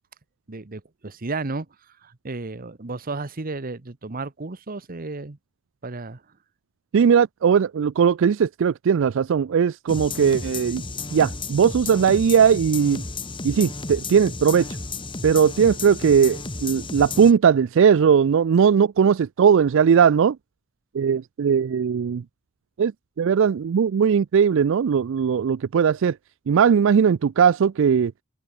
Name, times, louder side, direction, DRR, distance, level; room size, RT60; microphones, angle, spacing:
voice 1, 0.5-1.7 2.0-5.4 5.8-6.2, right 3 dB, 45° right, 1.0 m, -33 dB
voice 2, 6.9-10.8 11.1-13.0 13.4-14.7 15.2-20.4 20.9-22.2 22.8-22.9 23.2-26.2 26.5-28.1, right 7 dB, 65° right, 0.4 m, -19 dB
sound 1, 9.9-17.3, left 3 dB, 25° left, 2.0 m, -33 dB
head